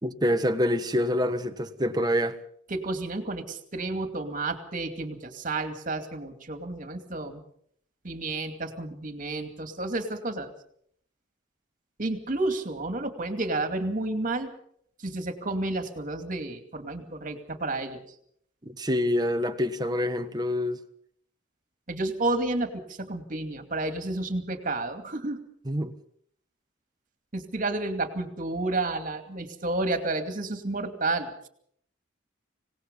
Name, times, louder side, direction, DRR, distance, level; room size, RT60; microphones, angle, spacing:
voice 1, 0.0-2.4 18.6-20.8 25.7-25.9, left 1 dB, 20° right, 1.3 m, -26 dB
voice 2, 2.7-7.4 8.0-10.5 12.0-14.5 15.0-18.0 21.9-25.4 27.3-31.5, right 2 dB, 40° right, 2.6 m, -31 dB
25.5 x 18.5 x 5.5 m
head